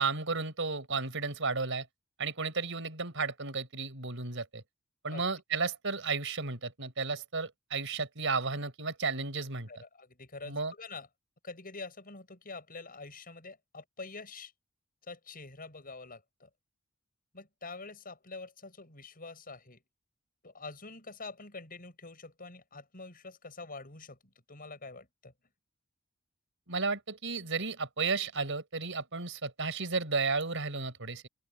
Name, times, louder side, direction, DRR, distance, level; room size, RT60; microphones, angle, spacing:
voice 1, 0.0-1.9 2.2-4.6 5.0-9.7 10.5-10.7 26.7-31.3, right 4 dB, 60° right, 5.4 m, -33 dB
voice 2, 9.7-11.1 11.4-14.5 15.1-16.5 17.3-19.8 20.4-25.3, left 3 dB, 40° left, 7.5 m, -46 dB
open air
head